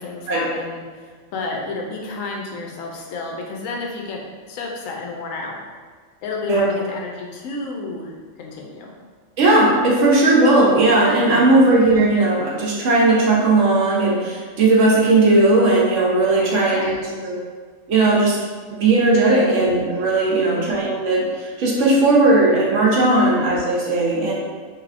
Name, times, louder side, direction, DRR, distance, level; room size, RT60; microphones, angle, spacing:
voice 1, 0.0-4.2 4.5-5.6 6.2-8.1 8.4-8.9 11.3-11.7 16.4-16.9 19.3-19.7 20.3-20.8 23.2-23.3, left 3 dB, 80° left, 0 dB, 1.0 m, -31 dB
voice 2, 9.4-17.4 17.9-18.4 18.7-24.3, right 2 dB, 70° right, -3 dB, 1.0 m, -17 dB
3.3 x 2.7 x 2.4 m, 1.5 s
omnidirectional pair, 1.4 m